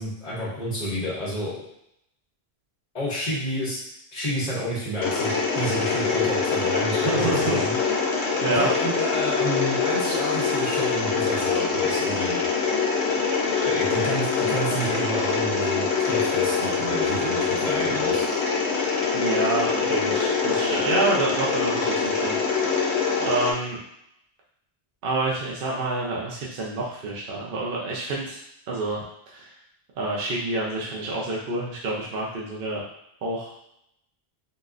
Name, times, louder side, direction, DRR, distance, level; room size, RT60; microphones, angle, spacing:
voice 1, 0.0-1.7 2.9-3.8 4.1-7.7 8.5-12.4 13.6-18.2, equal, 40° left, -8 dB, 1.1 m, -29 dB
Mechanisms, 5.0-23.5, left 5 dB, 90° left, 0.9 m, -24 dB
voice 2, 7.1-7.6 8.4-8.7 19.1-22.6 23.2-23.8 25.0-28.4 28.7-29.0 29.3-29.5 30.0-32.8 33.2-33.5, right 2 dB, 60° right, -4 dB, 0.8 m, -27 dB
3.9 x 2.6 x 2.4 m, 0.75 s
omnidirectional pair, 1.1 m